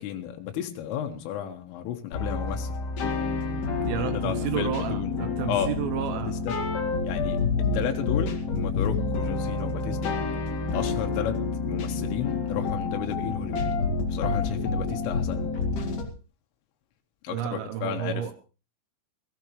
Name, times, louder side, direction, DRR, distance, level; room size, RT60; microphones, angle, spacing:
voice 1, 0.0-2.7 4.0-5.7 6.1-6.5 7.0-7.4 7.7-10.1 10.7-11.4 11.7-15.7 17.2-18.3, left 10 dB, 80° left, 4 dB, 3.8 m, -33 dB
sound 1, 2.1-16.0, left 4 dB, 50° left, 2.9 m, -28 dB
voice 2, 3.9-6.4 17.3-18.3, right 10 dB, 80° right, 6 dB, 3.6 m, -31 dB
20.0 x 14.5 x 3.2 m, 0.34 s
omnidirectional pair, 5.9 m